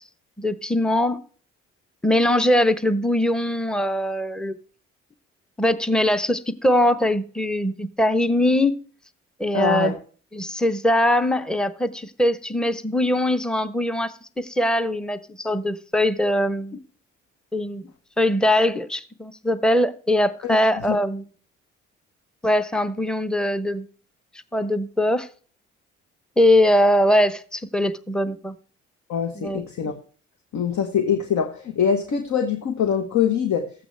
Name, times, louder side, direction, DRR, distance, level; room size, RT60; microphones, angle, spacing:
voice 1, 0.4-1.2 2.0-4.6 5.6-8.8 9.4-10.0 10.3-16.8 17.5-17.9 18.2-21.2 22.4-23.9 24.5-25.3 26.4-28.6 29.3-29.6, left 1 dB, ahead, 0.8 m, -21 dB
voice 2, 9.5-10.0 20.4-20.6 20.9-21.0 29.1-29.9 30.5-33.7, left 7 dB, 55° left, 1.1 m, -23 dB
13.5 x 8.6 x 3.3 m
hypercardioid pair, 45°, 33 cm